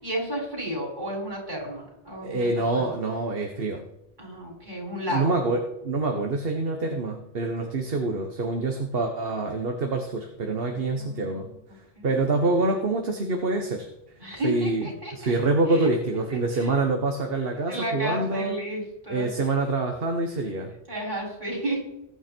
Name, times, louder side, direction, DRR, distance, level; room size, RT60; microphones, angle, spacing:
voice 1, 0.0-2.9 4.2-5.4 7.9-8.0 10.6-11.6 11.9-12.1 14.2-15.3 15.7-15.9 16.3-16.8 17.7-19.3 20.9-21.8, equal, 45° right, -3 dB, 6.7 m, -33 dB
voice 2, 2.2-3.8 5.1-11.5 12.0-13.9 14.4-18.5 19.1-20.7, right 3 dB, 60° right, 3 dB, 1.5 m, -26 dB
20.5 x 9.7 x 4.5 m, 0.85 s
omnidirectional pair, 1.1 m